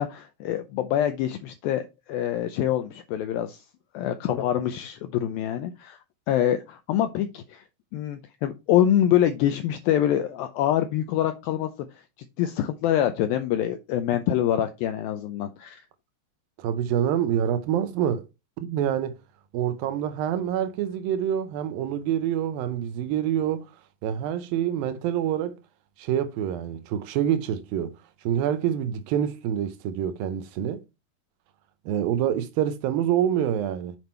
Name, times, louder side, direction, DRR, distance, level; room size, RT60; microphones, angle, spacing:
voice 1, 0.0-3.6 3.9-6.0 6.3-7.6 7.9-12.0 12.4-15.8, left 11 dB, 85° left, 2.1 m, -25 dB
voice 2, 16.6-18.3 18.6-19.2 19.5-23.7 24.0-25.6 26.0-27.9 28.2-30.8 31.9-34.0, right 10 dB, 80° right, 2.1 m, -26 dB
7.8 x 5.1 x 4.3 m
omnidirectional pair, 4.9 m